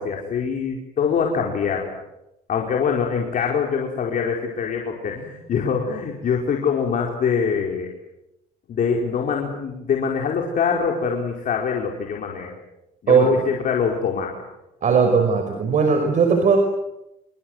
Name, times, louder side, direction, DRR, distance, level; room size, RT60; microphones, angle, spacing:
voice 1, 0.0-2.0 2.5-7.9 8.7-12.6 13.0-14.3, left 6 dB, 55° left, 0 dB, 4.7 m, -24 dB
voice 2, 14.8-16.6, right 5 dB, 45° right, 5 dB, 5.2 m, -18 dB
29.5 x 24.5 x 8.1 m, 0.88 s
cardioid pair, 110°, 17 cm